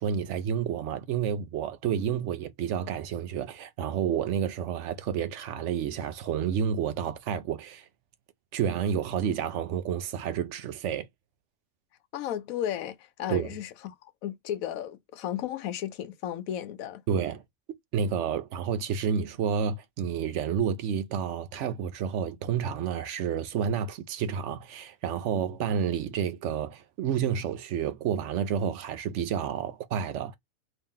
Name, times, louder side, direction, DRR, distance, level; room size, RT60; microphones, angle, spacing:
voice 1, 0.0-7.9 8.5-11.1 13.3-13.5 17.1-17.4 17.9-30.3, right 8 dB, 65° right, 0.8 m, -30 dB
voice 2, 12.1-17.0, left 11 dB, 80° left, 1.0 m, -34 dB
2.9 x 2.9 x 3.5 m
omnidirectional pair, 1.5 m